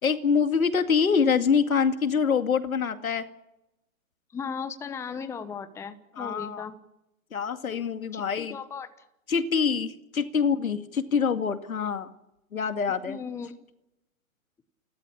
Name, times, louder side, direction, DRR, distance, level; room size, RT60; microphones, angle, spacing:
voice 1, 0.0-3.3 6.2-6.6 7.3-8.6 9.3-12.1 12.5-13.2, left 6 dB, 80° left, 9 dB, 2.2 m, -25 dB
voice 2, 4.3-6.8 8.1-8.9 13.1-13.6, left 6 dB, 5° left, 11 dB, 0.9 m, -36 dB
28.5 x 13.0 x 8.6 m, 0.91 s
hypercardioid pair, 135°, 41 cm